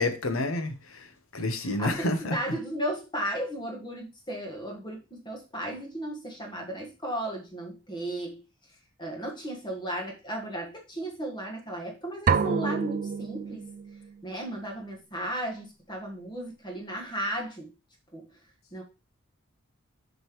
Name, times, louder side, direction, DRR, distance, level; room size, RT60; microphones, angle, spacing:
voice 1, 0.0-2.6, left 2 dB, 75° left, 1.1 m, -29 dB
voice 2, 1.7-8.4 9.0-13.6 14.2-17.7 18.1-18.4 18.7-18.8, right 1 dB, 20° left, 1.6 m, -35 dB
sound 1, 12.3-14.1, right 5 dB, 40° right, 0.4 m, -27 dB
7.8 x 5.3 x 3.1 m
head